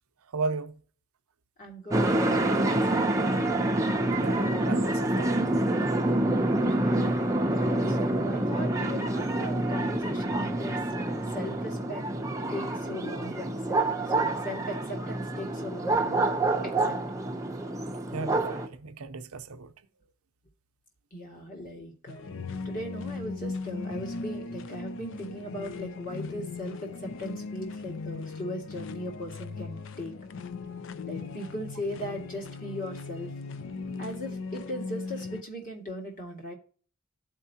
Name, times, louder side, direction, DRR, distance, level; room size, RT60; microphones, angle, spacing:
voice 1, 0.3-0.8 4.2-5.5 18.1-19.7 21.5-21.6, right 4 dB, 85° right, 0.6 m, -35 dB
voice 2, 1.6-3.7 6.7-7.1 7.6-12.1 12.5-13.8 14.1-16.3 16.6-17.0 21.1-30.2 31.1-33.3 34.0-36.5, equal, 40° left, 1.9 m, -39 dB
sound 1, 1.9-18.7, right 1 dB, 15° right, 0.6 m, -27 dB
sound 2, 22.1-35.4, left 4 dB, 60° left, 0.4 m, -38 dB
12.5 x 4.6 x 2.7 m
head